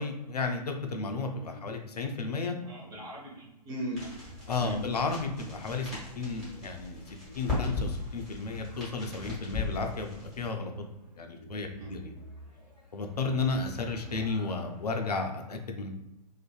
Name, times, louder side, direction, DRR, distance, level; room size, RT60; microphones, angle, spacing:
voice 1, 0.0-2.5 4.5-10.7 11.2-12.1 12.9-15.9, left 3 dB, 70° left, 4 dB, 0.4 m, -33 dB
voice 2, 2.6-4.2 4.6-4.8 11.7-11.9, right 1 dB, 15° right, -4 dB, 0.5 m, -39 dB
sound 1, 3.9-15.0, right 1 dB, 90° right, 1.0 m, -50 dB
sound 2, 4.0-10.5, left 3 dB, ahead, 1.1 m, -38 dB
2.5 x 2.4 x 2.3 m, 0.93 s
figure-of-eight pair, 120°, 21 cm